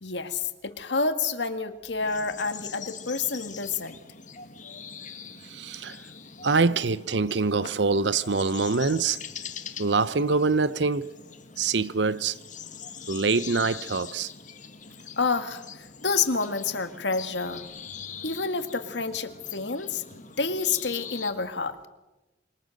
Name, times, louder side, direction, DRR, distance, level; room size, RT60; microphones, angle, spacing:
voice 1, 0.0-4.0 15.2-17.6 18.2-20.0 20.4-21.8, left 4 dB, 70° left, 2.0 m, -28 dB
sound 1, 2.0-21.3, left 7 dB, 45° left, 1.9 m, -43 dB
voice 2, 5.4-6.0 6.4-9.2 9.8-11.1 11.6-12.4 13.1-14.3, right 4 dB, 75° right, 0.8 m, -24 dB
27.0 x 24.5 x 6.6 m
head